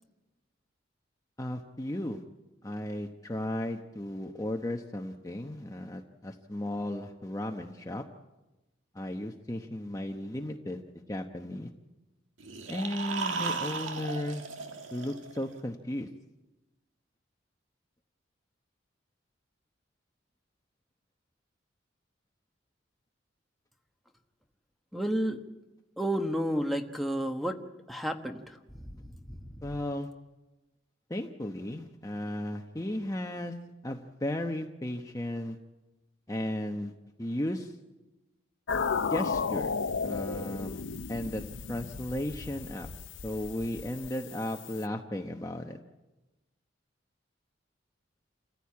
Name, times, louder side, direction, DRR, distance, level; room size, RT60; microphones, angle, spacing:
voice 1, 1.4-2.2 2.6-8.0 8.9-11.7 12.7-14.4 14.9-16.1 29.6-30.1 31.1-33.5 33.8-35.6 36.3-36.9 37.2-37.8 39.1-39.8 40.0-40.8 41.1-41.4 41.7-42.9 43.2-45.8, left 1 dB, 15° left, 3 dB, 0.9 m, -35 dB
sound 1, 12.4-15.5, right 4 dB, 90° right, 1.8 m, -36 dB
voice 2, 24.9-25.4 26.0-27.6 27.9-28.4, equal, ahead, 3 dB, 1.2 m, -30 dB
sound 2, 38.7-44.8, left 5 dB, 75° left, 0.7 m, -34 dB
28.5 x 15.0 x 8.5 m, 1.1 s
head